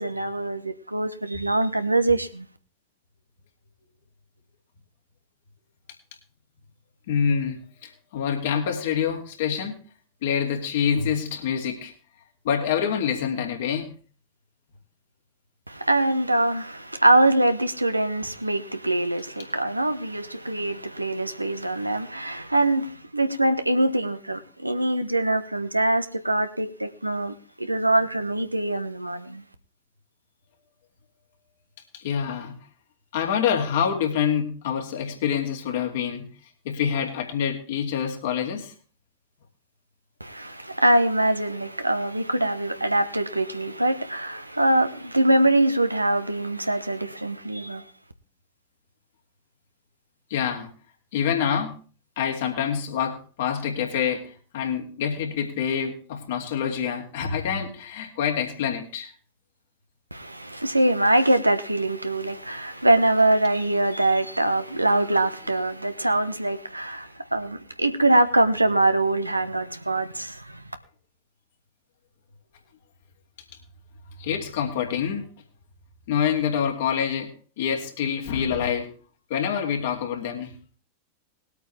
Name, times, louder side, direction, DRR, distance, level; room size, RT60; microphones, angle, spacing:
voice 1, 0.0-2.5 15.7-29.4 40.2-47.8 60.1-70.6, right 1 dB, 85° right, 1.0 m, -23 dB
voice 2, 7.1-9.7 10.2-11.9 12.4-13.9 31.9-32.5 33.1-36.3 36.6-38.7 50.3-50.7 51.1-51.8 52.2-59.1 74.2-75.3 76.1-78.9 79.3-80.6, left 8 dB, 55° left, 2.6 m, -26 dB
20.5 x 8.5 x 3.4 m
figure-of-eight pair, 90°, 0 cm